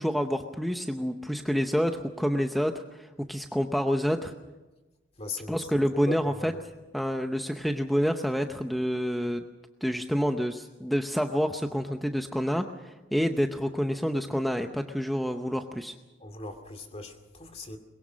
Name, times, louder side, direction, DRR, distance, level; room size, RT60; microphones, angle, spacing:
voice 1, 0.0-4.3 5.5-6.5 6.9-9.4 9.8-16.0, equal, ahead, 5 dB, 0.7 m, -28 dB
voice 2, 5.2-5.6 6.1-6.5 16.2-17.8, left 2 dB, 35° left, 6 dB, 2.4 m, -39 dB
23.0 x 22.0 x 6.3 m, 1.1 s
head